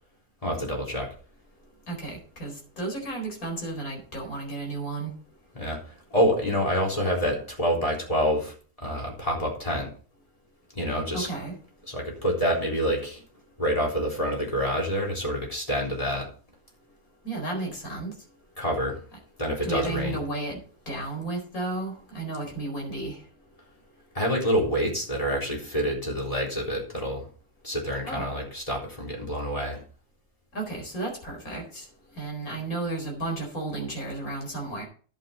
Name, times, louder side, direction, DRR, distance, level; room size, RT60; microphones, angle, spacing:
voice 1, 0.4-1.1 5.5-9.9 10.8-11.3 11.9-13.2 13.6-16.3 18.6-19.0 19.4-20.2 24.1-27.2 27.6-29.8, equal, 20° left, -1 dB, 3.9 m, -27 dB
voice 2, 1.9-5.1 11.1-11.5 17.2-18.1 19.6-20.6 20.9-23.2 28.0-28.2 30.5-31.9 32.2-34.9, right 2 dB, 60° left, 1 dB, 4.9 m, -33 dB
11.0 x 8.5 x 4.2 m, 0.41 s
omnidirectional pair, 1.7 m